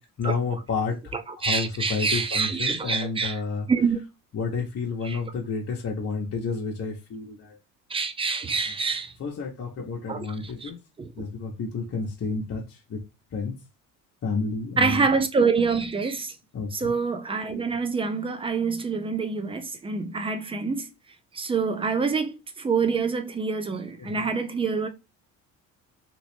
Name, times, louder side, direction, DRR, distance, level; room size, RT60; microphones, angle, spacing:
voice 1, 0.2-3.7 4.3-7.6 9.2-10.8 11.2-12.6 12.9-13.0 13.3-13.5 14.2-15.0 16.5-16.9 24.0-24.2, left 4 dB, 30° left, 0.9 m, -30 dB
voice 2, 1.1-3.4 3.7-4.0 5.0-5.2 7.9-9.1 10.1-10.7 11.0-11.3 14.8-16.3 16.7-20.9 21.3-24.9, right 5 dB, 10° right, 0.5 m, -26 dB
3.0 x 2.9 x 3.1 m
hypercardioid pair, 55°, 47 cm